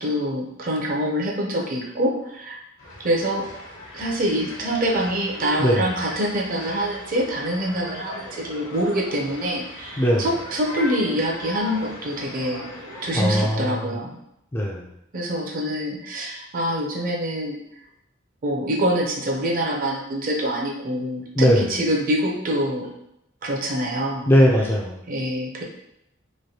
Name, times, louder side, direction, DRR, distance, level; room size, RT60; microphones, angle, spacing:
voice 1, 0.0-2.6 3.0-3.4 3.9-12.6 13.0-14.2 15.1-17.6 18.4-22.9 23.4-24.3 25.1-25.6, equal, 40° right, 0 dB, 0.5 m, -25 dB
sound 1, 2.8-13.5, left 1 dB, 75° left, 1.0 m, -39 dB
voice 2, 5.6-5.9 10.0-10.3 13.1-14.0 14.5-14.9 21.4-21.7 24.3-25.0, equal, 10° left, -2 dB, 0.3 m, -19 dB
3.1 x 2.5 x 2.7 m, 0.81 s
head